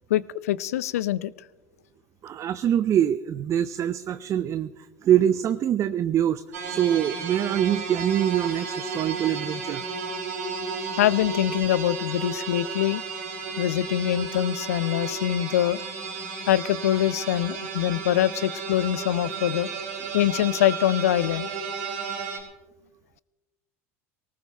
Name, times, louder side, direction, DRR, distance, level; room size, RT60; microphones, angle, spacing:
voice 1, 0.1-1.3 11.0-13.0 13.6-15.8 16.5-19.7 20.1-21.5, left 12 dB, 80° left, 20 dB, 0.5 m, -24 dB
voice 2, 2.2-9.8, right 10 dB, 40° right, 13 dB, 0.6 m, -24 dB
sound 1, 6.5-22.4, right 5 dB, 80° right, 4.2 m, -33 dB
19.0 x 19.0 x 3.4 m, 1.1 s
hypercardioid pair, 80°, 8 cm